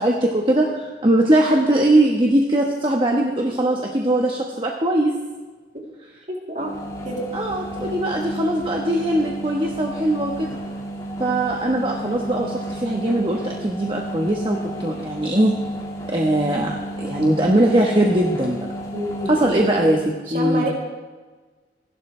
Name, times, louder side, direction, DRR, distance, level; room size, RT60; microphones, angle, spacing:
voice 1, 0.0-5.2 7.3-10.5 11.2-15.6 16.1-18.6 19.3-20.7, right 1 dB, 30° right, 0 dB, 1.3 m, -20 dB
voice 2, 6.3-6.8 7.0-7.2 18.9-19.4 20.3-20.7, right 1 dB, 45° right, -2 dB, 3.2 m, -27 dB
sound 1, 6.6-20.2, right 1 dB, 20° left, 2.2 m, -32 dB
28.0 x 12.0 x 3.4 m, 1.3 s
head